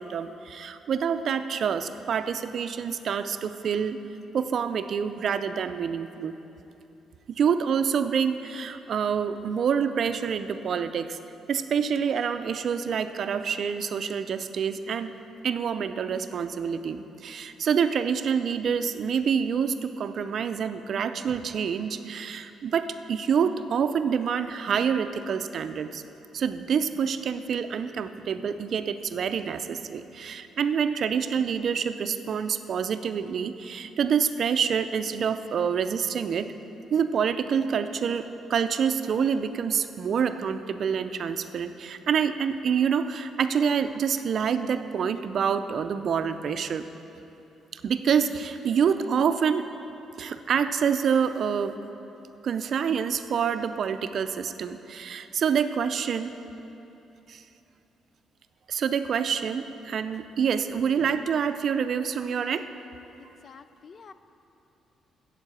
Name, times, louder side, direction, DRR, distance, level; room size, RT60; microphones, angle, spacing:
voice 1, 0.0-4.0 4.3-6.3 7.3-11.2 11.5-15.1 15.4-26.0 26.3-36.5 36.9-46.8 47.7-49.7 50.2-51.8 52.4-56.3 57.3-57.4 58.7-62.7, right 7 dB, 60° right, 10 dB, 0.4 m, -27 dB
voice 2, 63.4-64.1, left 5 dB, 45° left, 12 dB, 0.4 m, -48 dB
8.1 x 7.3 x 7.7 m, 2.9 s
cardioid pair, 90°, 0 cm